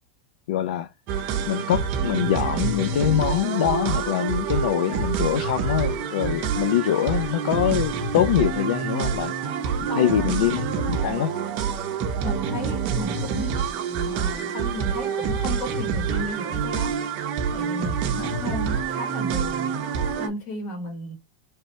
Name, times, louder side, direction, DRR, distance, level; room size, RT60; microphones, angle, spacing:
voice 1, 0.5-0.9 1.5-11.3 18.0-18.4, left 11 dB, 75° left, 0.4 m, -24 dB
sound 1, 1.1-20.3, right 6 dB, 40° right, 0.6 m, -27 dB
voice 2, 9.9-10.4 12.2-13.5 14.0-17.1 17.5-19.7 20.2-21.2, equal, 40° left, 1.5 m, -34 dB
3.3 x 2.7 x 4.1 m
supercardioid pair, 165°, 4 cm